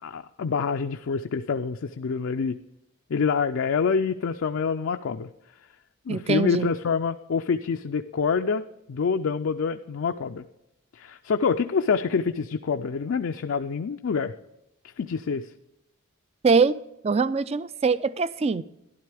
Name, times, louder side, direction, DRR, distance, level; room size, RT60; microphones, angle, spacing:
voice 1, 0.0-2.6 3.1-5.3 6.1-8.6 8.9-10.4 10.9-14.3 15.0-15.5, left 5 dB, 65° left, 0.4 m, -26 dB
voice 2, 6.1-6.7 16.4-16.7 17.0-18.6, right 4 dB, 30° right, 0.3 m, -22 dB
12.5 x 11.5 x 3.4 m
head